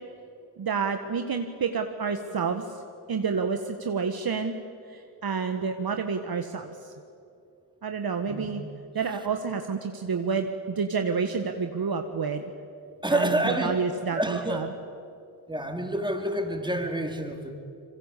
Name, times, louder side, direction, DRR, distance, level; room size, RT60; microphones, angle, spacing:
voice 1, 0.6-2.8 3.1-4.5 4.9-6.9 7.8-8.6 8.9-12.4 13.1-14.7, right 5 dB, 45° right, 6 dB, 1.7 m, -29 dB
voice 2, 13.0-13.8 14.1-14.7 15.5-17.6, right 1 dB, 10° right, 3 dB, 4.3 m, -28 dB
26.0 x 22.5 x 8.5 m, 2.5 s
supercardioid pair, 45°, 49 cm